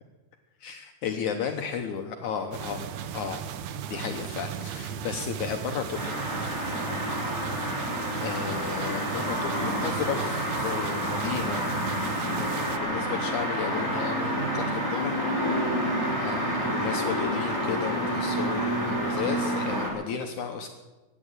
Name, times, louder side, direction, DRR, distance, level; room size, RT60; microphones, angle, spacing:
voice 1, 0.6-3.4 3.9-6.2 7.7-11.8 12.4-15.7 16.2-20.7, left 7 dB, 70° left, 5 dB, 2.0 m, -34 dB
sound 1, 2.5-12.8, right 9 dB, 90° right, 2.9 m, -36 dB
sound 2, 5.9-19.9, equal, 10° left, 4.5 m, -29 dB
15.5 x 10.0 x 9.2 m, 1.2 s
omnidirectional pair, 4.3 m